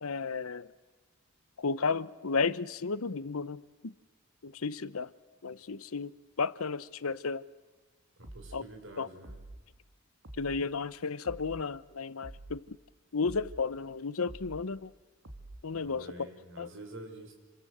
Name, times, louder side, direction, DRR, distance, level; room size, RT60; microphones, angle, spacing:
voice 1, 0.0-0.7 1.6-3.9 4.4-5.1 5.4-6.1 6.4-7.4 8.5-8.6 9.0-9.1 10.4-12.8 13.1-14.9 15.6-16.1 16.6-16.7, left 4 dB, 85° left, 0.8 m, -33 dB
voice 2, 8.2-9.4 15.8-17.4, right 1 dB, 60° right, 5.7 m, -48 dB
sound 1, 8.2-8.6 9.2-9.6 10.2-10.6 11.2-11.6 12.2-12.6 13.2-13.6 14.3-14.7 15.3-15.7, right 1 dB, 85° right, 2.5 m, -47 dB
28.0 x 26.5 x 8.0 m
head